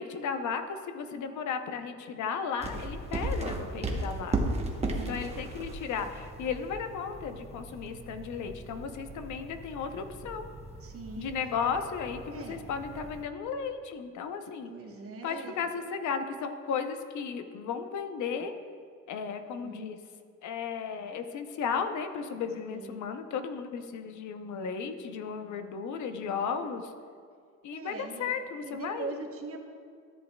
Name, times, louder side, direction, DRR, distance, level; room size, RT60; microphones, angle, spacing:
voice 1, 0.0-4.4 5.1-10.5 11.2-14.7 15.2-18.5 19.1-20.0 20.4-26.9 27.6-29.2, left 6 dB, 70° left, 8 dB, 0.7 m, -35 dB
sound 1, 2.6-13.2, right 2 dB, 20° right, 0.9 m, -37 dB
voice 2, 4.9-5.3 10.8-11.4 12.3-12.6 14.7-15.6 19.6-19.9 22.7-23.1 27.7-28.4 28.6-29.6, right 4 dB, 45° right, 3 dB, 1.0 m, -42 dB
13.5 x 7.8 x 2.2 m, 2.2 s
cardioid pair, 140°, 31 cm